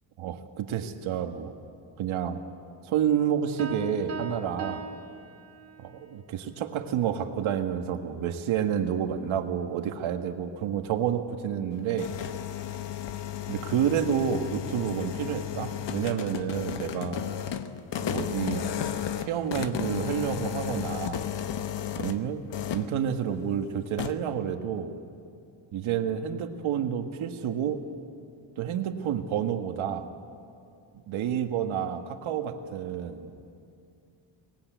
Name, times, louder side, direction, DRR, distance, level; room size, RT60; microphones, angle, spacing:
voice 1, 0.2-1.5 2.0-2.4 2.9-4.9 5.8-12.2 13.5-17.2 18.0-18.8 19.2-21.3 22.0-22.4 22.7-24.9 25.7-27.8 28.6-30.1 31.1-33.3, right 8 dB, 85° right, 6 dB, 1.7 m, -29 dB
Piano, 3.6-6.0, right 3 dB, 30° right, 3.0 m, -39 dB
sound 1, 11.7-22.2 22.5-23.0 24.0-24.1, left 10 dB, 60° left, 1.2 m, -33 dB
24.5 x 19.0 x 9.2 m, 2.5 s
cardioid pair, 125°, 47 cm